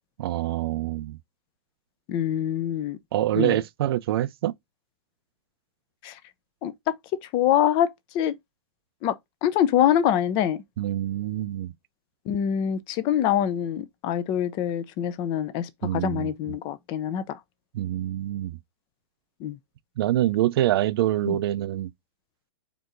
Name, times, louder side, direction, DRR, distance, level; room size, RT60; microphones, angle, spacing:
voice 1, 0.2-1.2 3.1-4.5 10.8-11.7 15.8-16.3 17.7-18.6 20.0-21.9, right 13 dB, 60° right, 0.5 m, -25 dB
voice 2, 2.1-3.0 3.3-3.6 6.0-6.2 6.6-6.9 7.2-8.4 9.0-9.1 9.4-10.6 12.3-17.4 19.4-19.6 21.3-21.4, left 10 dB, 30° left, 0.6 m, -25 dB
4.5 x 2.8 x 3.8 m
hypercardioid pair, 145°, 15 cm